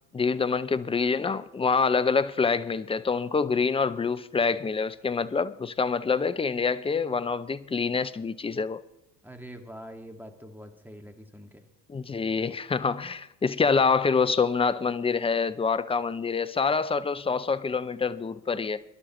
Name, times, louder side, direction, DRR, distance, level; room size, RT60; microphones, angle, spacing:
voice 1, 0.1-8.8 11.9-18.8, left 5 dB, 15° left, 0.5 m, -26 dB
voice 2, 9.2-11.6, equal, 5° right, 2.0 m, -44 dB
23.0 x 11.5 x 3.1 m
hypercardioid pair, 70°, 46 cm